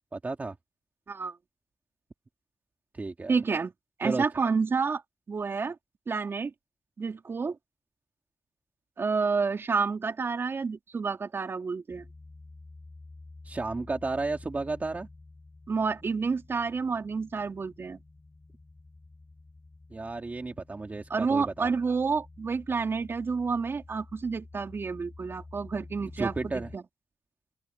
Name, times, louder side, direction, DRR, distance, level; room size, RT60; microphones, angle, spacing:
voice 1, 0.1-0.6 2.9-3.4 4.0-4.2 13.4-15.1 19.9-21.7 26.2-26.7, right 3 dB, 30° right, 2.6 m, -33 dB
voice 2, 3.3-3.7 4.0-5.0 5.3-5.8 6.1-6.5 7.0-7.6 9.0-12.0 15.7-18.0 21.1-26.8, right 5 dB, 45° right, 3.6 m, -29 dB
sound 1, 11.9-26.8, left 2 dB, 25° left, 4.4 m, -50 dB
open air
wide cardioid pair, 110°, 6 cm